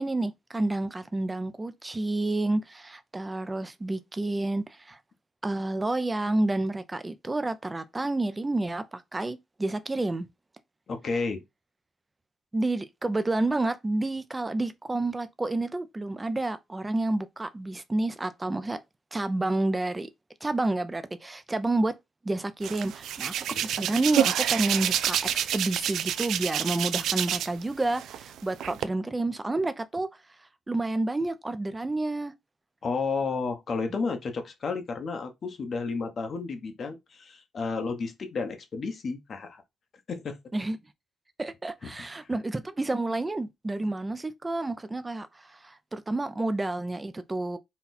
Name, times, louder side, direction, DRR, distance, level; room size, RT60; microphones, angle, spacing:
voice 1, 0.0-5.0 5.4-10.3 12.5-18.8 19.1-20.1 20.4-21.9 22.2-23.3 23.6-30.1 30.4-32.3 40.5-40.8 41.4-47.6, right 2 dB, 20° right, 0.6 m, -29 dB
voice 2, 10.9-11.4 32.8-39.6 40.1-40.4 41.8-41.9, left 4 dB, 50° left, 1.1 m, -32 dB
Hands, 22.6-27.6 27.9-28.8, right 10 dB, 75° right, 0.3 m, -28 dB
4.2 x 2.3 x 4.1 m
cardioid pair, 90°, 0 cm